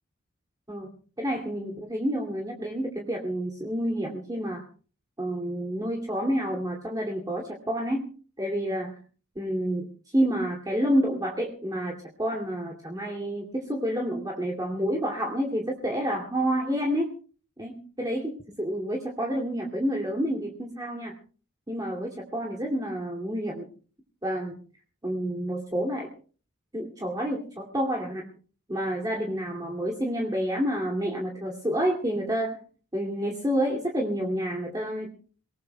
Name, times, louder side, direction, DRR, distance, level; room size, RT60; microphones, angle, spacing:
voice 1, 0.7-4.6 5.2-8.1 8.4-8.9 9.3-17.1 17.6-21.2 21.7-23.7 24.2-24.6 25.0-26.1 26.7-28.3 28.7-32.6 32.9-35.1, equal, 20° right, -1 dB, 2.6 m, -29 dB
28.5 x 19.0 x 2.3 m, 0.40 s
head